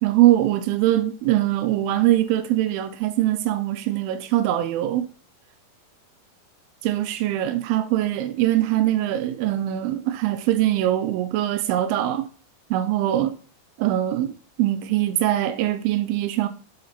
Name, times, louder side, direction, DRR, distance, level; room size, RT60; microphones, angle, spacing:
voice 1, 0.0-5.1 6.8-12.2 12.7-13.3 13.8-14.3 14.6-16.5, right 13 dB, 85° right, 2.5 m, -22 dB
6.1 x 3.9 x 4.3 m
omnidirectional pair, 4.2 m